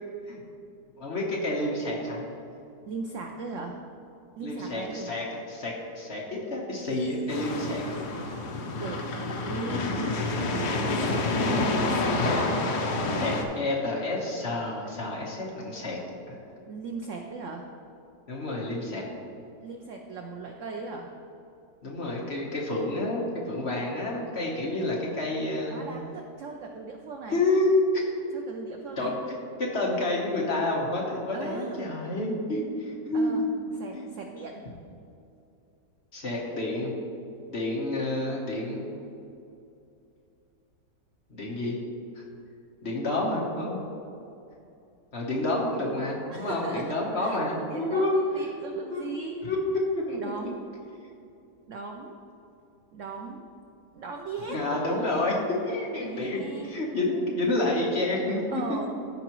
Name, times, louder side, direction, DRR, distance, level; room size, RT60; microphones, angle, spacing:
voice 1, 1.0-2.3 4.4-8.0 13.1-16.0 16.3-16.4 18.3-19.0 21.8-25.9 27.3-27.8 29.0-33.5 33.9-34.1 36.1-36.9 37.5-38.9 41.3-41.8 42.8-43.8 45.1-48.2 48.9-49.6 49.9-50.2 54.5-58.6, left 2 dB, 40° left, -3 dB, 1.2 m, -29 dB
voice 2, 2.9-3.8 4.4-5.1 8.7-9.1 9.4-10.0 10.3-12.6 16.7-17.7 19.6-21.1 25.7-27.4 28.3-29.1 31.3-31.9 33.1-33.4 33.8-34.6 46.3-49.4 50.2-50.7 51.7-52.2 52.9-53.5 53.9-55.3 56.0-56.8 58.5-58.9, right 4 dB, 70° right, 2 dB, 0.7 m, -38 dB
sound 1, 7.3-13.4, left 2 dB, 70° left, 1.3 m, -28 dB
14.0 x 4.8 x 3.0 m, 2.6 s
omnidirectional pair, 1.9 m